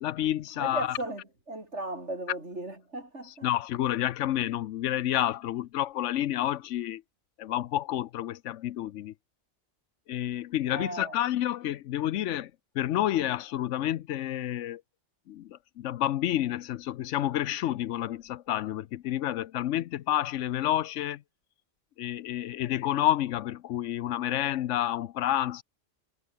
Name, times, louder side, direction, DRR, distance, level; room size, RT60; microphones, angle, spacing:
voice 1, 0.0-1.0 3.4-7.0 7.4-9.1 10.1-14.8 15.3-21.2 22.0-25.6, left 12 dB, 80° left, 0.9 m, -29 dB
voice 2, 0.6-3.5 10.7-11.2, right 2 dB, 65° right, 6.3 m, -36 dB
omnidirectional pair, 1.2 m